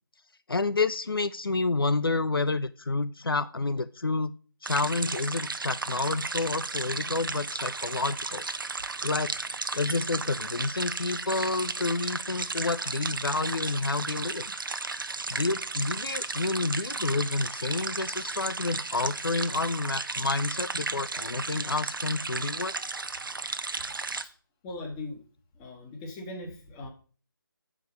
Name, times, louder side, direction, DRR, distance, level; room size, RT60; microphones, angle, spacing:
voice 1, 0.5-4.3 4.6-8.4 9.0-9.3 9.7-14.4 15.3-22.7, left 3 dB, 85° left, 14 dB, 0.5 m, -29 dB
sound 1, 4.6-24.2, right 3 dB, 70° right, 0.7 m, -34 dB
voice 2, 24.6-25.2 25.5-26.9, left 2 dB, 15° left, 2 dB, 1.3 m, -39 dB
7.4 x 4.9 x 5.4 m, 0.40 s
figure-of-eight pair, 155°, 12 cm